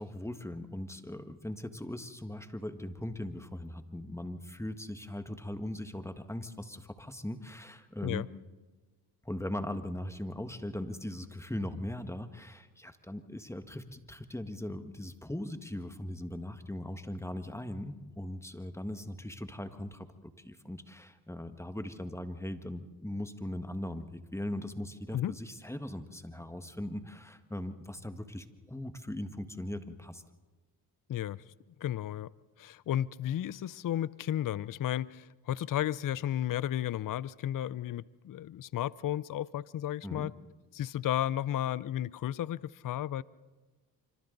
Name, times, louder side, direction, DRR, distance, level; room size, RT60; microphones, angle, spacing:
voice 1, 0.0-8.2 9.2-30.2 40.0-40.3, left 1 dB, 5° left, 1.7 m, -39 dB
voice 2, 31.1-31.4 31.8-32.3 32.6-40.3 40.7-43.2, left 11 dB, 50° left, 0.6 m, -33 dB
26.0 x 25.5 x 4.0 m
cardioid pair, 65°, 43 cm